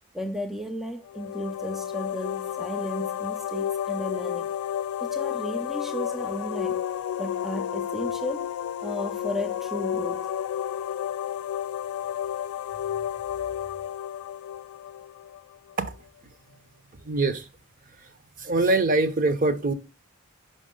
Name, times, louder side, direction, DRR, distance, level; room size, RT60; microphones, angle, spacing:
voice 1, 0.1-4.5 5.0-6.8 7.2-8.5 8.8-10.3 12.9-13.1, left 1 dB, ahead, 0.4 m, -34 dB
sound 1, 1.1-15.7, left 10 dB, 90° left, 0.3 m, -31 dB
voice 2, 17.0-17.5 18.4-19.7, right 2 dB, 40° right, 0.7 m, -23 dB
5.7 x 5.4 x 3.7 m
head